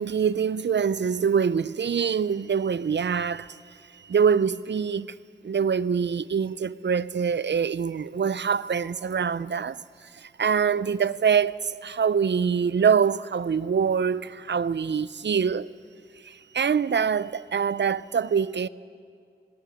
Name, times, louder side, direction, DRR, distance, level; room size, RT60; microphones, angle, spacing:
voice 1, 0.0-3.6 4.1-5.1 5.4-9.8 10.2-15.7 16.2-18.7, right 6 dB, 80° right, 0.5 m, -24 dB
18.5 x 18.0 x 9.3 m
wide cardioid pair, 65°, 18 cm